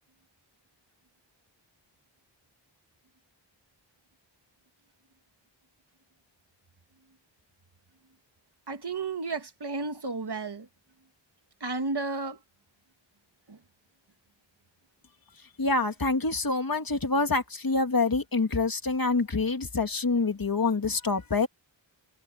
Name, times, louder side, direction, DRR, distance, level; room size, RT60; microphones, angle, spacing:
voice 1, 8.7-10.7 11.6-12.4 13.5-13.6, right 3 dB, 60° right, 2.5 m, -32 dB
voice 2, 15.6-21.5, left 3 dB, 50° left, 2.2 m, -26 dB
open air
wide cardioid pair, 60°, 46 cm